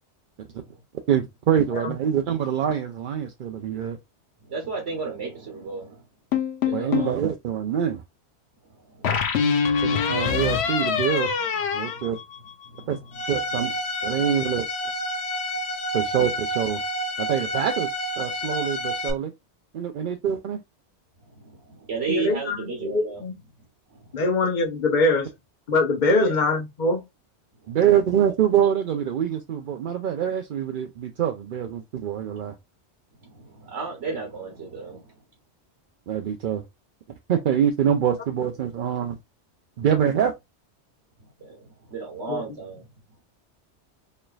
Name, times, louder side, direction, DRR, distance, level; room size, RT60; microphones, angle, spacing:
voice 1, 1.1-4.0 6.7-8.0 9.8-11.3 11.7-12.2 12.9-13.0 13.3-13.7 14.0-14.7 15.9-16.8 17.2-17.9 18.2-19.3 19.7-20.6 27.7-32.5 36.1-36.6 37.3-39.1 39.8-40.3, right 9 dB, 60° right, 0.6 m, -24 dB
voice 2, 4.4-6.0 6.7-7.2 8.6-9.8 11.9-12.2 12.6-12.9 21.2-23.2 23.6-24.3 26.1-26.3 27.6-27.8 28.2-28.3 33.2-35.2 41.2-42.8, right 5 dB, 80° right, 1.5 m, -35 dB
sound 1, 6.3-7.2 9.0-12.8, left 6 dB, 70° left, 1.0 m, -24 dB
Bowed string instrument, 13.1-19.1, equal, 85° left, 1.2 m, -29 dB
voice 3, 22.1-23.3 24.1-25.3 25.7-27.0 42.3-42.4, left 2 dB, 45° left, 1.0 m, -23 dB
4.3 x 3.3 x 2.3 m
omnidirectional pair, 1.2 m